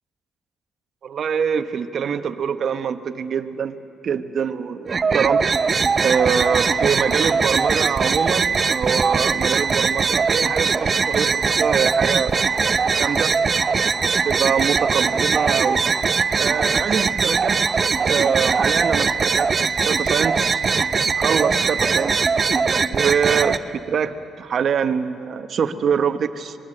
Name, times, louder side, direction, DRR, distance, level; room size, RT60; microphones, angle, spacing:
voice 1, 1.0-3.7 4.0-5.4 6.0-12.5 13.0-13.3 14.0-15.8 16.4-19.5 19.8-20.6 21.1-22.1 22.9-26.6, right 7 dB, 55° right, 10 dB, 1.0 m, -24 dB
sound 1, 4.9-23.6, right 5 dB, 40° right, 0.7 m, -20 dB
25.0 x 20.5 x 7.7 m, 2.6 s
cardioid pair, 90°, 0 cm